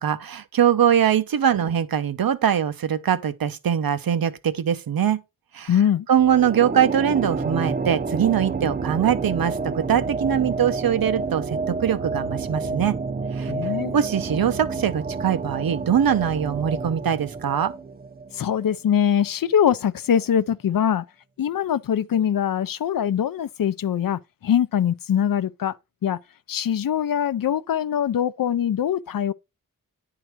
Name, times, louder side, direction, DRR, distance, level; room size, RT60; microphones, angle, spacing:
voice 1, 0.0-5.2 5.5-5.7 6.1-13.0 13.4-13.5 13.9-17.7, right 9 dB, 90° right, 0.7 m, -22 dB
voice 2, 5.7-6.1 13.5-13.9 18.3-21.0 21.4-25.8 26.0-26.2 26.5-29.3, left 9 dB, 75° left, 0.5 m, -22 dB
sound 1, 6.2-18.7, right 4 dB, 25° right, 0.5 m, -29 dB
10.0 x 3.8 x 4.5 m
wide cardioid pair, 100°, 34 cm